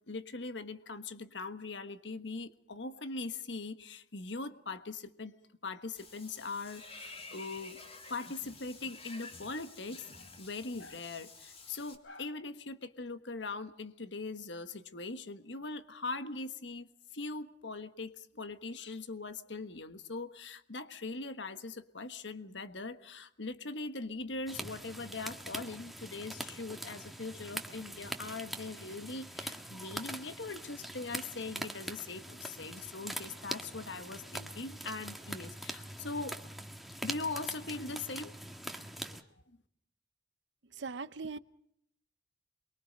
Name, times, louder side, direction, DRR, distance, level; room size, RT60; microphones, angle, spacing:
voice 1, 0.1-5.3 5.6-7.8 8.1-16.9 17.1-36.4 37.0-38.4 39.0-39.2, left 3 dB, 70° left, 1.4 m, -41 dB
Water / Bathtub (filling or washing), 6.0-12.0, left 3 dB, 35° left, 3.3 m, -51 dB
sound 1, 24.5-39.2, right 1 dB, ahead, 1.6 m, -43 dB
voice 2, 40.8-41.4, right 4 dB, 70° right, 0.8 m, -39 dB
28.5 x 23.0 x 5.2 m
head